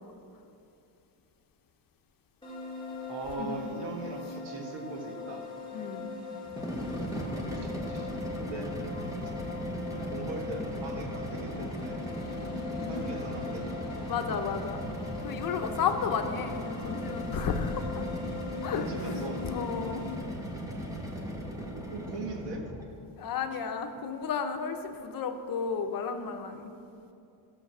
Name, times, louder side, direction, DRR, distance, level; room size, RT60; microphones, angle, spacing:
sound 1, 2.4-20.2, left 4 dB, 10° left, 2.3 m, -41 dB
voice 1, 3.1-5.4 7.6-8.1 8.4-8.7 9.2-9.5 10.1-12.0 12.9-13.7 18.7-19.4 21.9-22.6, right 3 dB, 70° right, 2 dB, 1.7 m, -39 dB
voice 2, 5.7-6.2 12.8-13.1 14.1-14.8 15.2-17.8 18.6-19.1 19.4-20.0 23.2-26.7, left 6 dB, 50° left, 6 dB, 0.9 m, -33 dB
sound 2, 6.4-22.9, equal, 10° right, 1.3 m, -37 dB
13.5 x 6.8 x 6.1 m, 2.7 s
cardioid pair, 145°, 44 cm